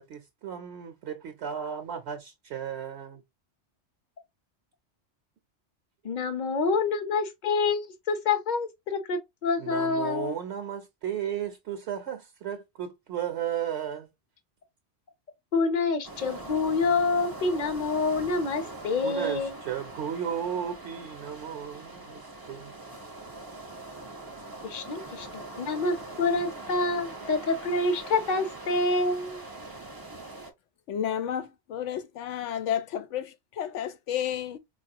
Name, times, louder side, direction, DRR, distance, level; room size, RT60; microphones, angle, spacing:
voice 1, 0.0-3.2 9.6-14.1 19.0-22.8, right 9 dB, 70° right, 0.8 m, -34 dB
voice 2, 6.0-10.4 15.5-19.5 24.6-29.4, left 3 dB, 45° left, 0.8 m, -27 dB
sound 1, 16.0-30.5, right 2 dB, 25° right, 0.5 m, -42 dB
voice 3, 30.9-34.6, left 9 dB, 90° left, 1.0 m, -31 dB
4.1 x 2.4 x 2.7 m
omnidirectional pair, 1.2 m